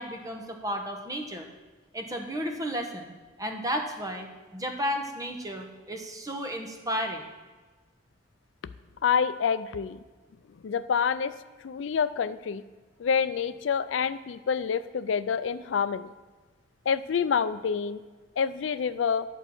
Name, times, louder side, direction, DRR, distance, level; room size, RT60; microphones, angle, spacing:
voice 1, 0.0-1.5 1.9-7.3, equal, 20° right, 4 dB, 1.0 m, -33 dB
voice 2, 9.0-10.0 10.6-11.3 11.6-12.6 13.0-16.1 16.9-18.0 18.4-19.3, left 6 dB, 75° left, 14 dB, 0.4 m, -27 dB
11.0 x 4.6 x 7.0 m, 1.3 s
head